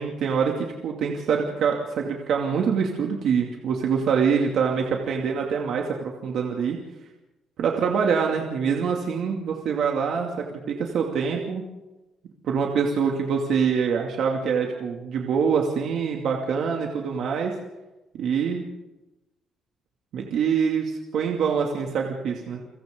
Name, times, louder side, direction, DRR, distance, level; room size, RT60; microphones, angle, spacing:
voice 1, 0.0-6.8 7.6-11.7 12.4-17.5 18.1-18.7 20.1-22.6, right 6 dB, 55° right, 0 dB, 2.6 m, -25 dB
29.5 x 24.5 x 3.9 m, 1.0 s
cardioid pair, 155°, 0 cm